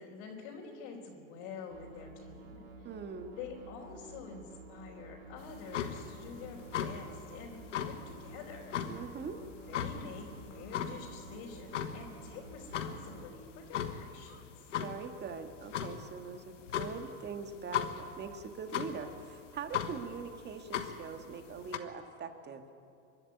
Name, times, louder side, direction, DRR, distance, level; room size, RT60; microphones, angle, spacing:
voice 1, 0.0-2.9 3.4-8.8 9.7-14.7, left 5 dB, 60° left, -4 dB, 3.6 m, -47 dB
sound 1, 1.7-13.3, right 2 dB, 65° right, 3.2 m, -51 dB
voice 2, 2.8-3.3 8.9-9.4 14.8-22.7, right 5 dB, 30° right, 6 dB, 1.8 m, -42 dB
sound 2, 5.4-21.8, left 9 dB, 85° left, 1.4 m, -39 dB
24.5 x 11.5 x 9.6 m, 2.7 s
hypercardioid pair, 100°, 36 cm